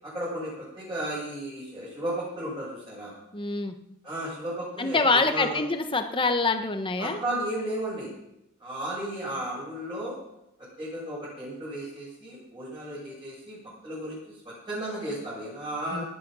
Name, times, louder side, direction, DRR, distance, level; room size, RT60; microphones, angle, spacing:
voice 1, 0.0-3.1 4.0-5.6 7.0-8.1 8.6-10.1 10.8-13.6 13.8-16.1, right 1 dB, 20° right, -9 dB, 7.6 m, -34 dB
voice 2, 3.3-3.7 4.8-7.2 15.9-16.0, left 3 dB, 25° left, 6 dB, 1.2 m, -25 dB
19.0 x 9.1 x 6.4 m, 0.85 s
head